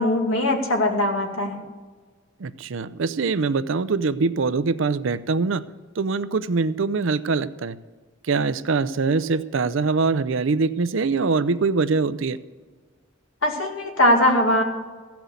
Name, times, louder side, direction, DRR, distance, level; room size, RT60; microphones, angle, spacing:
voice 1, 0.0-1.6 13.4-14.6, left 1 dB, 70° left, 2 dB, 2.1 m, -20 dB
voice 2, 2.4-5.7 6.0-7.8 8.2-12.4, right 4 dB, 65° right, 13 dB, 0.5 m, -23 dB
15.5 x 6.0 x 8.2 m, 1.4 s
head